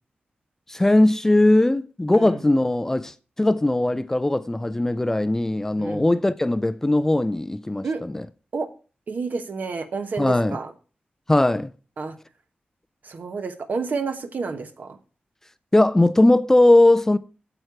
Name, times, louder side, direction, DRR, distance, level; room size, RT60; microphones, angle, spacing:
voice 1, 0.7-8.3 10.2-10.6 11.3-11.7 15.7-17.2, left 1 dB, 15° left, 0.4 m, -19 dB
voice 2, 9.1-10.7 12.0-12.2 13.0-15.0, right 4 dB, 60° right, 1.1 m, -30 dB
8.9 x 7.9 x 4.7 m
wide cardioid pair, 165°, 3 cm